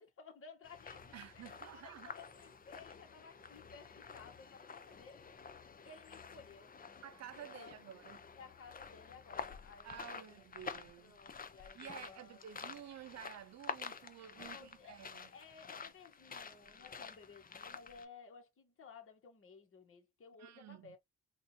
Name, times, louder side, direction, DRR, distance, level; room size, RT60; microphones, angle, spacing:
voice 1, 0.0-5.3 5.8-6.8 7.3-7.8 8.4-10.5 11.0-12.5 14.4-21.0, left 5 dB, 45° left, 1.7 m, -57 dB
sound 1, 0.6-18.1, left 5 dB, 30° left, 0.7 m, -50 dB
voice 2, 1.1-2.2 7.0-8.2 9.8-11.1 11.7-15.3 20.4-21.0, right 11 dB, 60° right, 0.7 m, -52 dB
3.7 x 2.7 x 2.7 m
cardioid pair, 90°, 30 cm